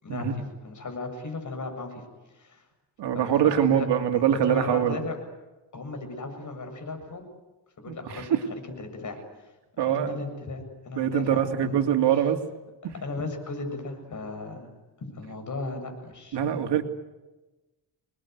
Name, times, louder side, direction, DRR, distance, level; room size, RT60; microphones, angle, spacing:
voice 1, 0.0-2.0 2.3-2.7 3.1-3.9 4.1-5.2 5.7-7.2 7.8-9.2 9.8-11.9 12.8-14.7 15.0-16.6, left 3 dB, 45° left, 5 dB, 7.7 m, -36 dB
voice 2, 3.0-5.0 7.9-8.4 9.8-10.1 11.0-12.4 12.8-12.9 16.3-16.8, right 9 dB, 75° right, 5 dB, 2.9 m, -24 dB
28.0 x 21.5 x 9.6 m, 1.1 s
cardioid pair, 125°, 42 cm